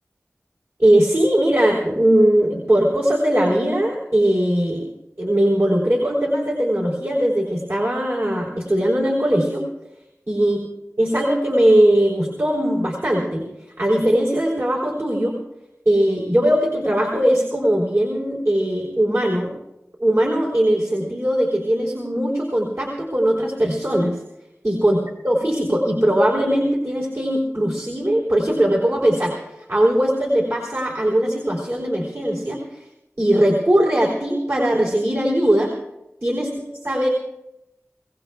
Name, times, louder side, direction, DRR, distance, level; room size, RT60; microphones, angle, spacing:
voice 1, 0.8-4.8 5.2-9.6 10.3-10.6 11.0-13.4 13.8-15.4 15.9-19.5 20.0-24.2 24.6-25.0 25.2-29.3 29.7-32.8 33.2-35.7 36.2-37.1, right 1 dB, 50° right, -3 dB, 3.6 m, -19 dB
24.5 x 17.0 x 2.4 m, 0.84 s
wide cardioid pair, 45°, 5 cm